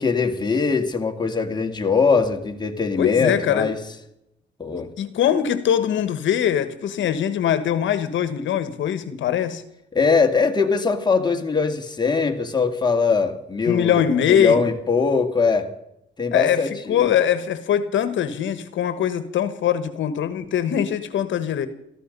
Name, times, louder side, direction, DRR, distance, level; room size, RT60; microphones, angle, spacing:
voice 1, 0.0-3.8 4.6-4.9 9.9-15.7 16.2-16.9, left 5 dB, 20° left, 3 dB, 2.4 m, -21 dB
voice 2, 3.0-3.7 5.0-9.6 13.7-14.6 16.3-21.7, left 9 dB, 75° left, 12 dB, 1.4 m, -22 dB
18.0 x 14.0 x 5.4 m, 0.81 s
cardioid pair, 90°, 20 cm